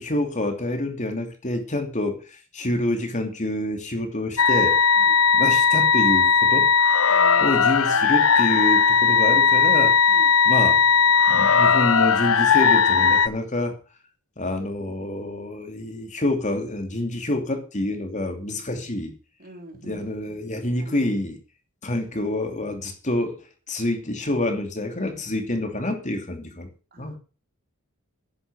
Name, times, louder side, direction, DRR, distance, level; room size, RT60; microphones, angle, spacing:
voice 1, 0.0-4.8 5.3-6.7 7.4-10.0 10.4-10.8 11.3-13.8 14.4-19.1 19.8-21.4 21.8-23.4 23.7-26.7 27.0-27.2, left 1 dB, 35° left, 2.9 m, -27 dB
sound 1, 4.4-13.3, left 6 dB, 75° left, 0.9 m, -18 dB
voice 2, 7.1-8.2 10.1-10.3 18.2-18.7 19.4-21.0 26.9-27.2, right 2 dB, 45° right, 3.7 m, -45 dB
11.0 x 11.0 x 6.2 m
head